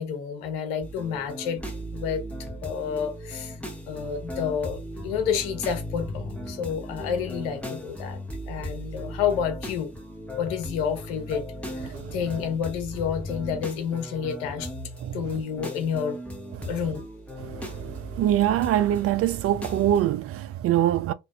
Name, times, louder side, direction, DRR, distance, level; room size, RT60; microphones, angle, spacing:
voice 1, 0.0-1.6 1.9-2.2 2.6-3.6 3.9-8.2 8.5-9.9 10.4-11.4 11.8-14.7 15.1-16.2 16.7-17.1, left 7 dB, 90° left, 1.0 m, -29 dB
sound 1, 0.8-20.1, equal, 5° left, 1.1 m, -37 dB
voice 2, 18.2-21.1, right 12 dB, 50° right, 0.4 m, -23 dB
2.7 x 2.5 x 2.2 m
supercardioid pair, 80°, 29 cm